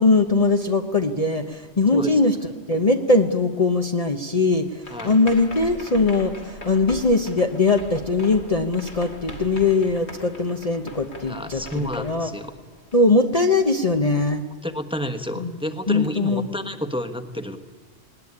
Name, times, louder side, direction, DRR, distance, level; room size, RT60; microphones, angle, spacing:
voice 1, 0.0-2.4 2.7-12.3 12.9-14.4 15.4-15.6 15.9-16.5, left 3 dB, 35° left, 5 dB, 1.0 m, -21 dB
sound 1, 4.8-13.3, left 2 dB, 75° left, 3.0 m, -40 dB
voice 2, 11.3-12.5 14.6-17.6, equal, 5° right, 6 dB, 1.3 m, -30 dB
19.5 x 19.0 x 9.8 m, 1.3 s
omnidirectional pair, 1.1 m